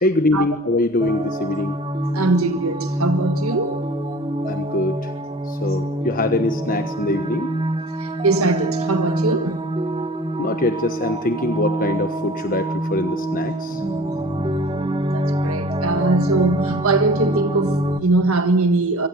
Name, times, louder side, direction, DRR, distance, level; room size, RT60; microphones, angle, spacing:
voice 1, 0.0-1.8 4.5-5.1 5.4-7.5 10.4-13.8, left 2 dB, 40° left, 1.3 m, -23 dB
sound 1, 1.0-18.0, right 1 dB, 25° right, 2.0 m, -25 dB
voice 2, 2.1-3.8 8.0-9.6 13.8-13.9 15.1-19.1, right 3 dB, 80° right, 1.5 m, -21 dB
25.0 x 25.0 x 9.6 m
head